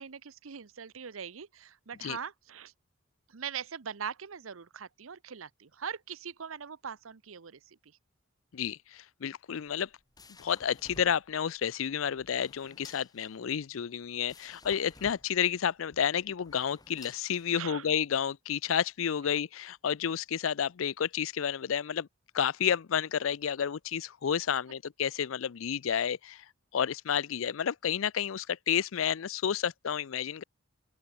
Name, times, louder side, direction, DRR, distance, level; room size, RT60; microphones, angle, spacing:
voice 1, 0.0-2.7 3.3-8.0 17.5-17.9, right 7 dB, 85° right, 0.8 m, -41 dB
voice 2, 8.5-9.9 10.4-22.1 22.3-26.4 26.7-30.4, left 8 dB, 80° left, 0.5 m, -31 dB
sound 1, 9.6-17.9, left 3 dB, 20° left, 2.8 m, -55 dB
open air
head